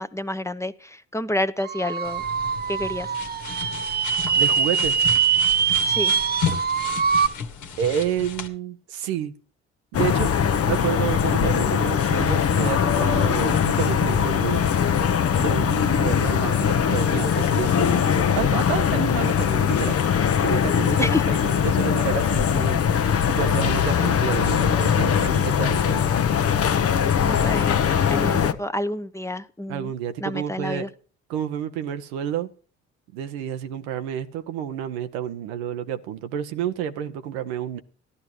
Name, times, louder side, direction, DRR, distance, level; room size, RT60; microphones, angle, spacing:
voice 1, 0.0-2.2 2.7-3.1 5.8-6.1 21.0-21.2 27.3-27.8 28.1-29.9 30.2-30.9, left 1 dB, 10° left, 0.9 m, -29 dB
sound 1, 1.6-7.3, right 7 dB, 30° right, 0.6 m, -23 dB
sound 2, 2.0-8.5, left 7 dB, 65° left, 1.6 m, -33 dB
voice 2, 4.3-5.0 7.8-9.3 9.9-10.3 10.7-14.6 15.4-20.0 20.4-22.8 23.3-26.1 29.7-30.9 31.3-32.5 33.1-37.8, right 9 dB, 80° right, 0.8 m, -29 dB
sound 3, 9.9-28.5, left 8 dB, 45° left, 0.9 m, -21 dB
14.5 x 11.5 x 3.0 m
hypercardioid pair, 45°, 33 cm